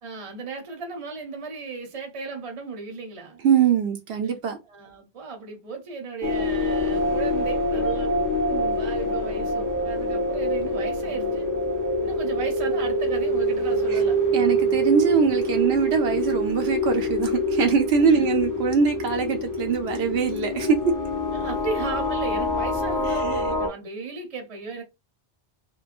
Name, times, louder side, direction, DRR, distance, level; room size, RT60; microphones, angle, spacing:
voice 1, 0.0-3.4 4.7-8.1 8.5-11.5 12.0-14.2 18.1-18.4 21.3-24.8, right 4 dB, 40° right, 0.6 m, -35 dB
voice 2, 3.4-4.6 13.9-14.0 14.3-20.9 23.1-23.2, right 6 dB, 85° right, 0.8 m, -22 dB
sound 1, 6.2-23.7, equal, 25° left, 0.5 m, -25 dB
2.9 x 2.2 x 2.4 m
omnidirectional pair, 1.0 m